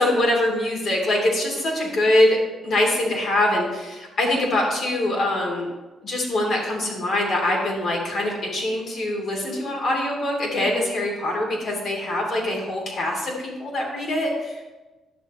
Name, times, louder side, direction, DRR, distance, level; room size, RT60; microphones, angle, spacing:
voice 1, 0.0-2.4 2.6-5.7 6.0-14.6, left 1 dB, 55° left, -1 dB, 2.8 m, -23 dB
10.5 x 7.3 x 3.1 m, 1.2 s
cardioid pair, 90°, 0 cm